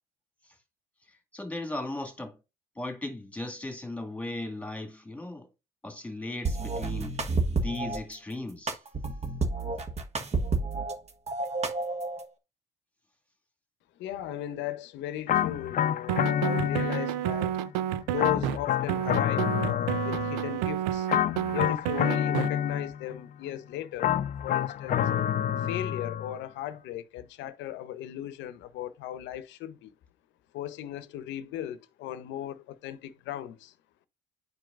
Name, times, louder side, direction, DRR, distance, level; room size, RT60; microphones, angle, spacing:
voice 1, 1.1-2.4 2.8-5.5 5.8-7.2 7.5-8.8, left 2 dB, 5° left, 2.0 m, -37 dB
sound 1, 6.4-8.0 8.7-10.9 11.3-12.2, right 3 dB, 35° right, 1.3 m, -30 dB
voice 2, 14.0-17.6 18.1-21.1 21.5-24.2 24.4-25.0 25.5-29.9 30.5-33.7, left 12 dB, 70° left, 0.8 m, -37 dB
sound 2, 15.3-17.4 18.2-20.6 21.1-23.2 24.0-26.4, left 10 dB, 45° left, 0.5 m, -28 dB
sound 3, 16.1-18.6 18.9-22.5, right 12 dB, 85° right, 0.5 m, -30 dB
10.0 x 4.6 x 2.5 m
supercardioid pair, 75°, 19 cm